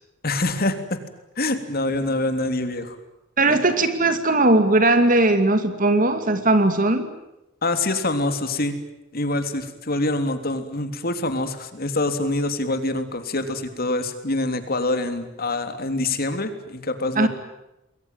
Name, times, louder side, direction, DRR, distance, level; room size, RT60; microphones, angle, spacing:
voice 1, 0.2-1.0 1.4-3.0 3.5-3.6 7.6-8.8 9.1-17.3, left 2 dB, 50° left, 8 dB, 3.3 m, -25 dB
voice 2, 3.4-7.1 17.2-17.3, right 2 dB, 45° right, 9 dB, 2.5 m, -18 dB
28.0 x 22.0 x 9.3 m, 0.89 s
head